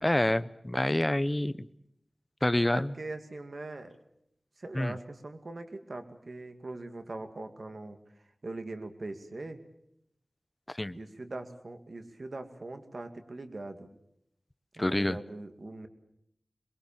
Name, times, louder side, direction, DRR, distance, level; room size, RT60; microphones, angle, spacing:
voice 1, 0.0-1.7 2.4-2.9 4.7-5.0 10.7-11.0 14.8-15.2, left 1 dB, 20° left, 15 dB, 0.8 m, -27 dB
voice 2, 2.7-4.0 4.6-8.0 8.4-9.6 10.9-13.9 14.8-15.9, right 2 dB, 65° right, 7 dB, 2.3 m, -41 dB
23.0 x 22.0 x 7.4 m, 0.76 s
wide cardioid pair, 55°, 0 cm